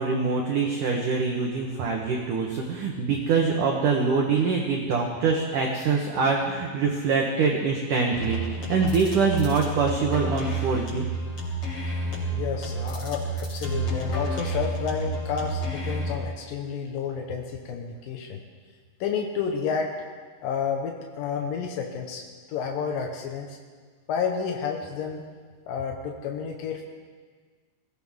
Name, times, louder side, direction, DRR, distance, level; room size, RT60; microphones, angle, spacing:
voice 1, 0.0-11.0, right 4 dB, 80° right, 0 dB, 1.8 m, -24 dB
sound 1, 8.1-16.1, right 2 dB, 30° left, 4.4 m, -30 dB
voice 2, 12.3-18.4 19.0-19.9 20.4-22.2 22.5-23.6 24.1-25.2 25.7-26.8, left 6 dB, 80° left, 2 dB, 2.1 m, -30 dB
22.5 x 17.0 x 3.6 m, 1.6 s
omnidirectional pair, 5.6 m